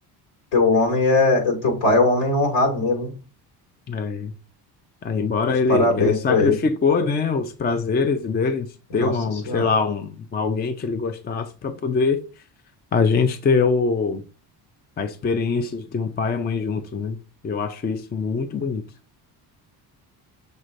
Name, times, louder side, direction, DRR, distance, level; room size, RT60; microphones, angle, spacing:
voice 1, 0.5-3.1 5.7-6.5 8.9-9.1 9.4-9.7, left 2 dB, 70° left, 2.3 m, -19 dB
voice 2, 3.9-4.3 5.0-12.2 12.9-14.2 15.0-17.2 17.4-18.8, left 4 dB, 25° left, 0.4 m, -23 dB
6.4 x 3.2 x 2.5 m
cardioid pair, 110°, 43 cm